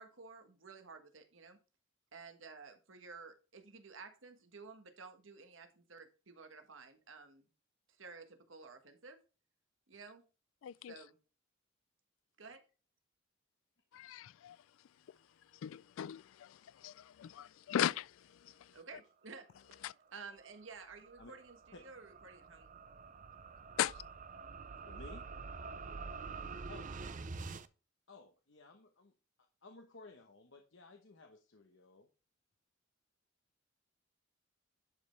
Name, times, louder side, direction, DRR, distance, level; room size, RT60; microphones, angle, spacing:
voice 1, 0.0-1.6 2.1-7.5 8.0-9.2 9.9-10.2 10.9-11.1 12.4-12.6 18.7-19.4 20.1-22.7, right 4 dB, 75° right, 1.5 m, -53 dB
voice 2, 14.0-14.5 15.6-16.2 16.8-16.9 17.2-18.0 19.8-19.9 23.8-23.9, left 10 dB, 85° left, 0.3 m, -36 dB
sound 1, 19.8-27.7, right 4 dB, 40° right, 0.6 m, -47 dB
voice 3, 24.9-25.3 26.7-26.9 28.1-29.1 29.6-32.1, left 3 dB, 65° left, 1.1 m, -56 dB
11.0 x 5.5 x 3.2 m
head